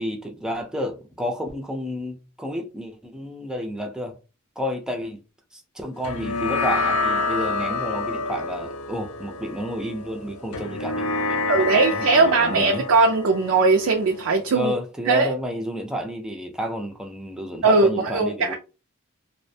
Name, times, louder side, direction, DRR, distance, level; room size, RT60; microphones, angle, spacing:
voice 1, 0.0-4.2 4.6-5.2 5.5-12.9 14.5-18.5, equal, 5° right, 0.4 m, -31 dB
sound 1, 6.0-14.8, left 3 dB, 75° left, 0.4 m, -28 dB
voice 2, 11.5-14.7 15.1-15.3 17.6-18.5, right 3 dB, 70° right, 0.4 m, -19 dB
2.5 x 2.1 x 2.6 m
head